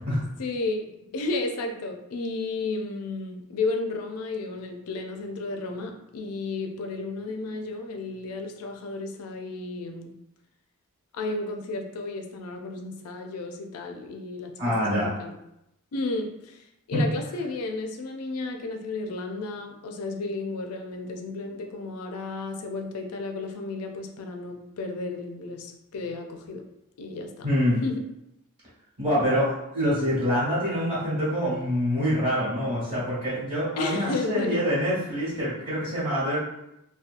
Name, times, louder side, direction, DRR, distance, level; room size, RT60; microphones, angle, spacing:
voice 1, 0.4-10.1 11.1-15.4 15.9-26.6 27.0-27.5 27.8-28.0 33.8-34.6, left 3 dB, 80° left, 4 dB, 0.4 m, -33 dB
voice 2, 14.6-15.1 16.9-17.0 27.4-27.8 29.0-36.4, equal, 40° right, -9 dB, 1.4 m, -25 dB
2.7 x 2.2 x 2.5 m, 0.85 s
head